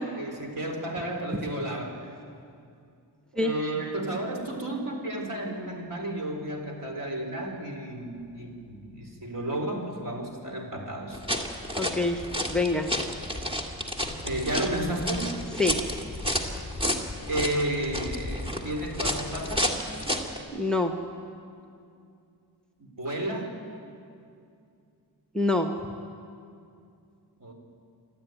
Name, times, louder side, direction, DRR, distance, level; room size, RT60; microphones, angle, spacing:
voice 1, 0.1-2.0 3.3-11.2 14.2-15.3 17.3-19.8 22.8-23.5 27.4-27.5, right 1 dB, 50° right, 2 dB, 4.0 m, -32 dB
sound 1, 11.1-20.4, equal, 15° right, 2.1 m, -31 dB
voice 2, 11.7-12.2 12.5-12.9 15.6-15.8 20.5-20.9 25.3-25.7, left 2 dB, ahead, 4 dB, 1.1 m, -25 dB
26.5 x 12.5 x 9.2 m, 2.5 s
wide cardioid pair, 85°, 40 cm